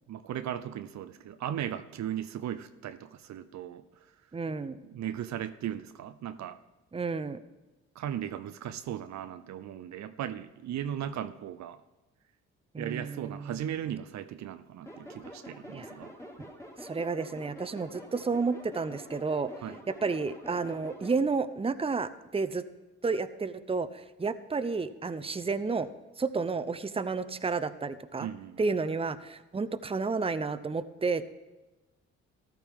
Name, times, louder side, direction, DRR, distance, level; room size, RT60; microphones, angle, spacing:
voice 1, 0.1-4.1 4.8-6.6 8.0-11.8 12.8-16.1 19.6-19.8 28.2-28.7, right 10 dB, 70° right, 12 dB, 0.6 m, -37 dB
voice 2, 4.3-4.8 6.9-7.4 12.7-13.7 15.7-15.9 16.8-19.5 19.9-22.6 23.0-25.9 26.2-28.3 28.6-31.3, right 4 dB, 20° right, 11 dB, 0.7 m, -31 dB
sound 1, 14.8-21.2, equal, 10° left, 2.3 m, -47 dB
14.0 x 12.0 x 3.7 m, 1.1 s
supercardioid pair, 60°, 29 cm